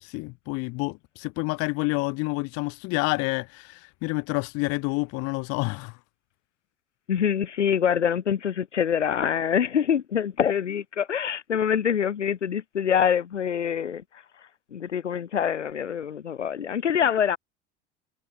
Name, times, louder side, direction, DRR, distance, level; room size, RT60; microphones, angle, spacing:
voice 1, 0.0-6.0, left 29 dB, 45° left, 0.7 m, -28 dB
voice 2, 7.1-14.0 14.7-17.4, left 8 dB, 80° left, 1.3 m, -25 dB
figure-of-eight pair, 75°, 35 cm